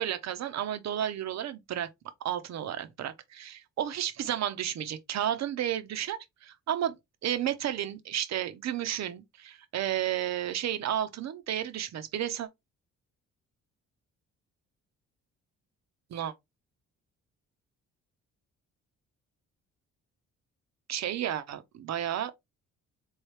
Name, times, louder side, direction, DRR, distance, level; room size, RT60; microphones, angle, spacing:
voice 1, 0.0-1.9 2.2-6.9 7.2-12.5 16.1-16.3 20.9-22.3, right 11 dB, 60° right, 0.7 m, -32 dB
3.8 x 3.2 x 3.2 m
cardioid pair, 90°, 30 cm